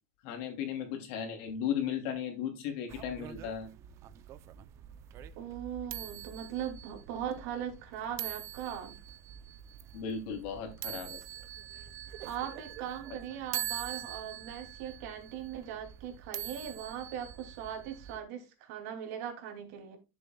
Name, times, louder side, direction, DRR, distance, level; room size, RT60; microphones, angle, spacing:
voice 1, 0.2-3.7 9.9-11.2, left 8 dB, 65° left, 2.8 m, -36 dB
sound 1, 2.9-18.2, right 11 dB, 40° right, 0.6 m, -44 dB
voice 2, 5.4-8.9 12.2-20.0, right 9 dB, 80° right, 2.8 m, -39 dB
13.5 x 7.0 x 2.3 m
cardioid pair, 160°, 8 cm